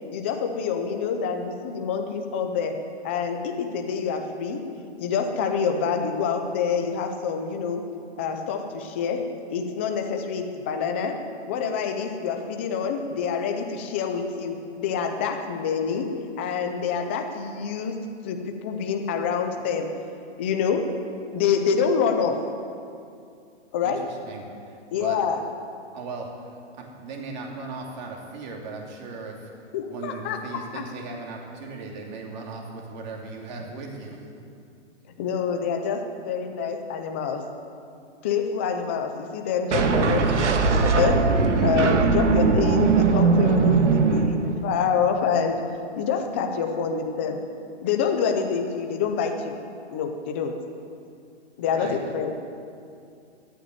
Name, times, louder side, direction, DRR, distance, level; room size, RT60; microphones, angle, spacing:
voice 1, 0.1-2.7 3.0-4.6 5.0-7.8 8.2-9.2 9.5-11.2 11.5-16.1 16.4-18.0 18.2-19.9 20.4-20.8 21.3-22.3 23.7-24.0 24.9-25.4 29.7-30.4 30.7-30.8 35.2-37.4 38.2-41.2 41.6-45.6 45.9-47.4 47.8-49.5 49.9-50.5 51.6-52.3, left 6 dB, 10° left, 4 dB, 0.4 m, -26 dB
voice 2, 23.8-25.2 25.9-29.5 29.9-34.3 51.7-52.0, right 3 dB, 40° right, 0 dB, 2.7 m, -38 dB
sound 1, 39.7-44.9, right 4 dB, 85° right, 1.5 m, -20 dB
13.0 x 9.2 x 9.3 m, 2.4 s
hypercardioid pair, 155°, 35 cm